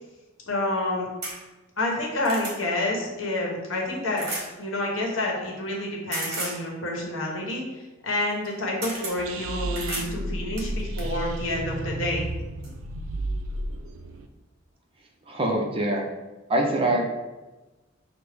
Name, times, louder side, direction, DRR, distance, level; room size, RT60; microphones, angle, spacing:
voice 1, 0.5-1.1 1.8-4.3 4.6-7.6 8.0-12.3, left 1 dB, 80° left, -2 dB, 1.0 m, -28 dB
sound 1, 1.2-1.4 1.9-2.6 4.2-4.5 6.1-6.6 8.3-8.4 8.8-9.2 9.7-10.1 10.6-11.1 12.1-12.2 12.6-12.7, right 2 dB, 55° right, 1.0 m, -33 dB
sound 2, 9.2-14.3, right 1 dB, 80° right, 0.4 m, -32 dB
voice 2, 15.3-16.0 16.5-17.0, right 1 dB, 30° right, 0 dB, 0.5 m, -24 dB
6.1 x 2.0 x 3.4 m, 1.1 s
head